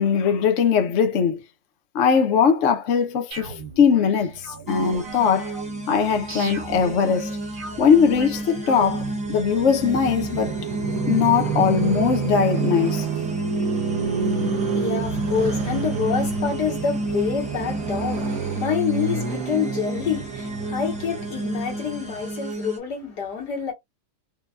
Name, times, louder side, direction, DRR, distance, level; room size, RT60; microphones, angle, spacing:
voice 1, 0.0-1.4 1.9-5.5 5.9-7.4 7.8-10.6 11.1-13.1, left 6 dB, 55° left, 1.0 m, -20 dB
sound 1, 3.3-9.1, right 3 dB, 40° right, 0.9 m, -39 dB
Motorcycle, 4.2-22.4, right 6 dB, 65° right, 1.2 m, -31 dB
sound 2, 4.7-22.8, right 1 dB, 5° right, 0.9 m, -31 dB
voice 2, 14.0-23.7, left 7 dB, 80° left, 2.0 m, -27 dB
4.6 x 2.3 x 2.4 m
omnidirectional pair, 1.7 m